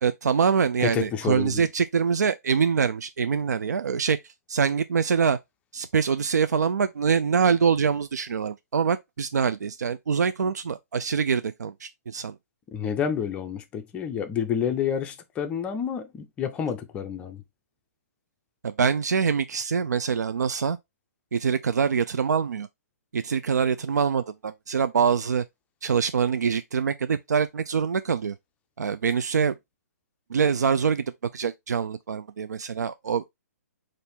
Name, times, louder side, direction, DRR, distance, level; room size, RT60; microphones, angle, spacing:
voice 1, 0.0-5.4 5.7-12.4 18.6-20.8 21.3-22.7 23.1-25.4 25.8-28.4 28.8-29.6 30.3-31.0 31.3-33.3, right 6 dB, 85° right, 0.4 m, -24 dB
voice 2, 0.8-1.7 12.7-17.4, left 8 dB, 15° left, 0.4 m, -29 dB
4.2 x 2.6 x 3.5 m
hypercardioid pair, 145°, 9 cm